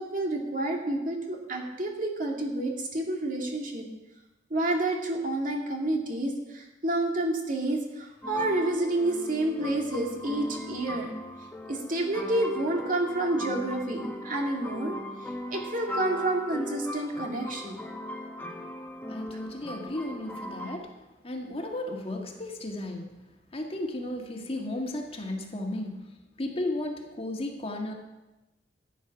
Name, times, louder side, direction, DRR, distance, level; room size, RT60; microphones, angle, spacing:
voice 1, 0.0-3.9 4.5-11.1 11.7-15.0 15.5-17.9, right 2 dB, 50° right, 1 dB, 2.2 m, -29 dB
sound 1, 8.2-20.8, left 1 dB, 10° left, 1.3 m, -38 dB
voice 2, 19.1-20.9 21.2-23.2 23.5-26.1 26.4-27.9, left 1 dB, 35° left, 2 dB, 1.7 m, -34 dB
13.5 x 9.3 x 6.0 m, 1.0 s
head